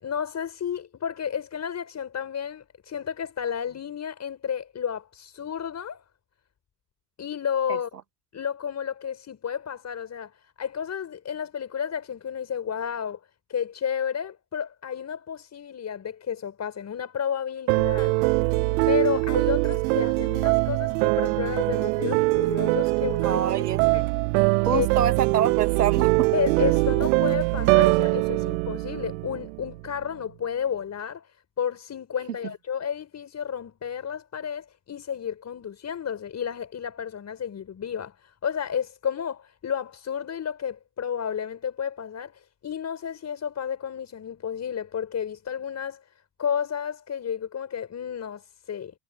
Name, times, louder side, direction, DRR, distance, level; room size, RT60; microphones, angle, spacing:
voice 1, 0.0-6.0 7.2-7.9 8.3-13.2 13.5-18.2 18.9-23.5 23.9-24.1 24.7-24.9 26.3-46.0 46.4-48.9, left 8 dB, 35° left, 5.4 m, -31 dB
sound 1, 17.7-29.8, right 28 dB, 65° right, 0.8 m, -23 dB
voice 2, 23.2-23.8 24.6-26.3, right 9 dB, 85° right, 1.4 m, -26 dB
hypercardioid pair, 65°, 46 cm